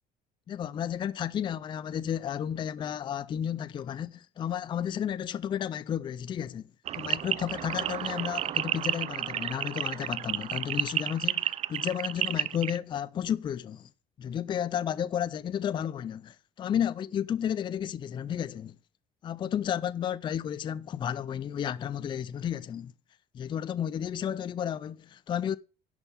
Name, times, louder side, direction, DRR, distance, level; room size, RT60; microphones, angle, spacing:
voice 1, 0.5-13.9 14.2-18.7 19.2-22.9 23.3-25.6, left 9 dB, 25° left, 0.4 m, -32 dB
sound 1, 6.9-12.8, right 11 dB, 35° right, 0.4 m, -31 dB
10.5 x 5.4 x 5.5 m
cardioid pair, 150°, 18 cm